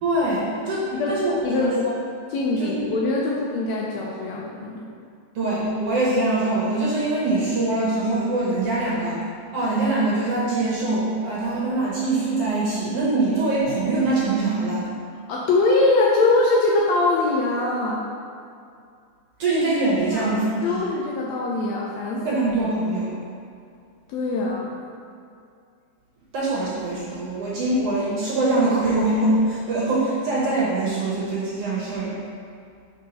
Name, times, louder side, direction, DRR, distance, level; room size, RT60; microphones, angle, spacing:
voice 1, 0.0-1.8 2.6-2.8 5.3-9.2 9.5-14.8 19.4-20.9 22.2-23.1 26.3-32.2, right 2 dB, 65° right, -6 dB, 1.7 m, -23 dB
voice 2, 1.4-1.7 2.3-4.9 15.3-18.1 20.1-20.3 20.6-22.2 24.1-24.8, left 2 dB, 80° left, -4 dB, 1.6 m, -22 dB
4.5 x 4.4 x 5.2 m, 2.4 s
omnidirectional pair, 3.5 m